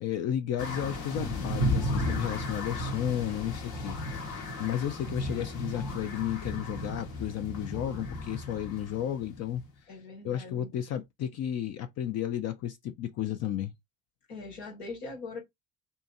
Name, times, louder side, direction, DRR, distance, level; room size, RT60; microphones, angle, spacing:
voice 1, 0.0-9.9 10.2-13.7, left 11 dB, 55° left, 0.5 m, -33 dB
sound 1, 0.6-9.7, left 1 dB, 70° left, 1.1 m, -34 dB
voice 2, 9.9-10.7 14.3-15.4, left 3 dB, 85° left, 1.4 m, -41 dB
2.7 x 2.6 x 2.5 m
hypercardioid pair, 60°, 31 cm